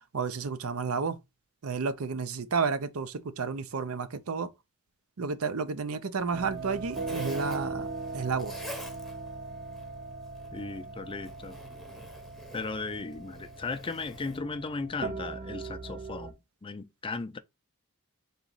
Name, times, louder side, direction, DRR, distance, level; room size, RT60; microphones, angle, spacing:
voice 1, 0.1-1.2 1.6-4.5 5.2-7.9 8.1-8.5, right 5 dB, 75° right, 0.6 m, -31 dB
Zipper (clothing), 6.2-14.4, equal, ahead, 0.7 m, -49 dB
sound 1, 6.3-16.3, right 3 dB, 45° right, 0.8 m, -39 dB
voice 2, 10.5-11.6 12.5-16.4 16.6-17.4, left 3 dB, 25° left, 0.4 m, -36 dB
4.0 x 3.0 x 3.8 m
head